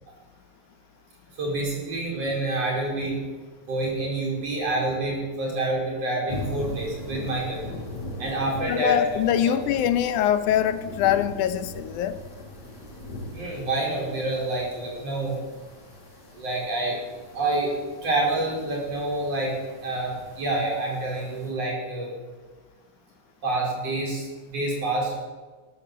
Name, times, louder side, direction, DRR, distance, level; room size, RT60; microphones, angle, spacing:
voice 1, 1.3-3.2 3.7-7.8 8.2-9.0 9.4-9.6 13.3-15.4 16.3-17.0 17.3-17.8 18.0-19.6 19.8-22.2 23.4-25.1, right 2 dB, 55° right, -3 dB, 6.0 m, -27 dB
sound 1, 6.3-21.5, left 1 dB, 60° left, 6.8 m, -40 dB
voice 2, 8.7-12.2, left 10 dB, 85° left, 11 dB, 2.3 m, -23 dB
13.5 x 13.5 x 7.4 m, 1.4 s
omnidirectional pair, 3.5 m